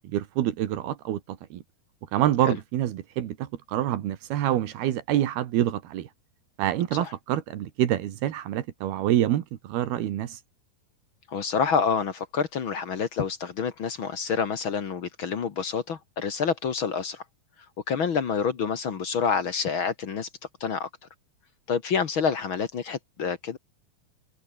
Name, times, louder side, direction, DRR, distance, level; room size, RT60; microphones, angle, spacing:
voice 1, 0.1-1.6 2.1-6.1 6.6-10.4, right 12 dB, 85° right, 3.6 m, -26 dB
voice 2, 11.3-17.2 17.9-20.3 20.6-20.9 21.7-23.6, left 6 dB, 50° left, 1.5 m, -27 dB
omnidirectional pair, 4.4 m